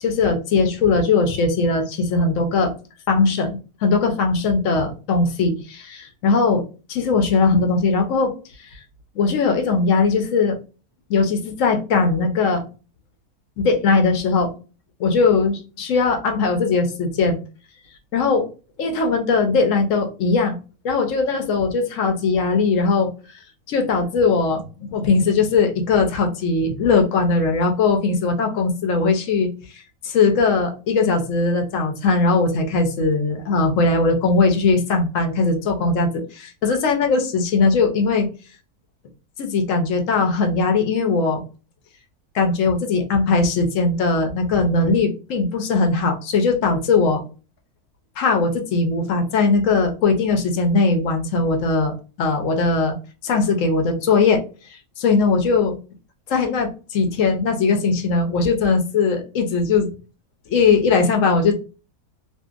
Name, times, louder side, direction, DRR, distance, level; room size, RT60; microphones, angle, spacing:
voice 1, 0.0-2.7 3.1-8.3 8.7-8.8 9.2-10.6 11.1-12.6 13.6-14.5 15.0-17.4 18.1-18.5 18.8-20.6 20.8-23.1 23.7-38.3 39.4-41.4 42.3-47.2 48.2-53.0 53.2-54.4 55.0-55.8 56.3-59.9 60.5-61.6, left 4 dB, 65° left, 4 dB, 0.9 m, -19 dB
2.7 x 2.5 x 2.3 m, 0.34 s
omnidirectional pair, 1.6 m